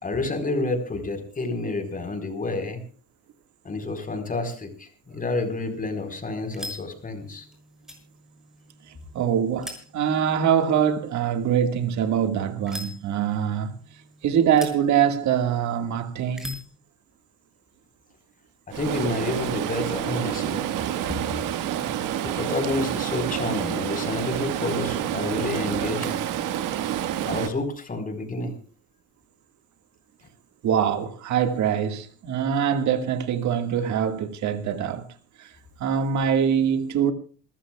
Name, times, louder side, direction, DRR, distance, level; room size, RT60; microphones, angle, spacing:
voice 1, 0.0-2.8 3.6-7.5 18.7-20.6 22.2-26.2 27.3-28.5, left 2 dB, 25° left, 4.4 m, -29 dB
sound 1, 5.4-16.8, equal, ahead, 6.4 m, -45 dB
voice 2, 8.9-13.7 14.2-16.5 28.4-28.5 30.6-35.1 35.4-35.5 35.8-37.1, right 8 dB, 65° right, 1.9 m, -24 dB
Stream, 18.7-27.5, right 11 dB, 85° right, 1.7 m, -28 dB
27.5 x 15.5 x 2.3 m
cardioid pair, 105°, 31 cm